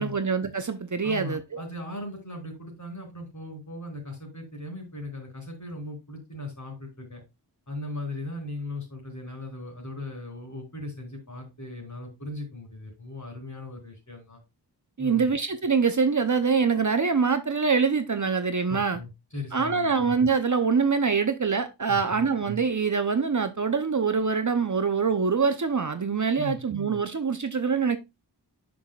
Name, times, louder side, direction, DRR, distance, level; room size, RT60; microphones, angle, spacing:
voice 1, 0.0-1.6 15.0-19.0 19.5-28.0, right 5 dB, 45° right, 0.7 m, -24 dB
voice 2, 1.0-7.2 7.7-14.4 15.0-15.3 18.7-20.0 21.9-22.2 26.3-26.6, left 2 dB, 40° left, 4.3 m, -38 dB
9.9 x 6.2 x 2.4 m
wide cardioid pair, 60°, 44 cm